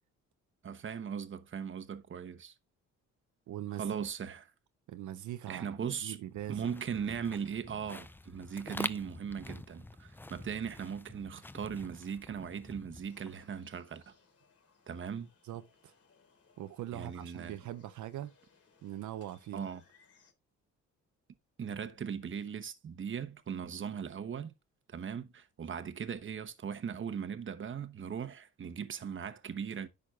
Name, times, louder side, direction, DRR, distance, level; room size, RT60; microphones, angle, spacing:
voice 1, 0.6-2.5 3.7-4.5 5.5-6.2 6.5-14.1 14.9-15.3 16.9-17.5 19.5-19.8 21.6-24.5 24.9-29.9, right 7 dB, 40° right, 1.1 m, -39 dB
voice 2, 3.5-3.9 4.9-5.8 6.0-6.7 15.5-15.9 16.6-18.3 18.8-19.7, right 12 dB, 75° right, 0.8 m, -41 dB
sound 1, 6.3-13.6, left 2 dB, 5° left, 0.4 m, -46 dB
sound 2, 13.1-20.3, left 5 dB, 50° left, 3.3 m, -67 dB
10.5 x 6.4 x 2.4 m
cardioid pair, 90°, 30 cm